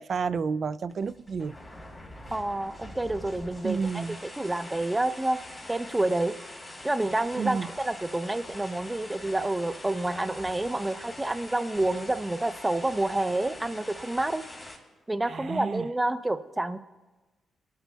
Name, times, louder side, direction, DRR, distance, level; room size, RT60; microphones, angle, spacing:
voice 1, 0.0-1.6 3.6-4.2 7.4-7.7 15.3-15.8, right 5 dB, 55° right, 0.3 m, -30 dB
sound 1, 0.9-14.8, left 1 dB, 15° left, 4.0 m, -44 dB
voice 2, 2.3-4.0 4.4-5.4 5.7-6.3 6.8-14.4 15.1-16.8, right 2 dB, 15° right, 0.7 m, -28 dB
27.0 x 11.5 x 2.3 m
cardioid pair, 70°, 0 cm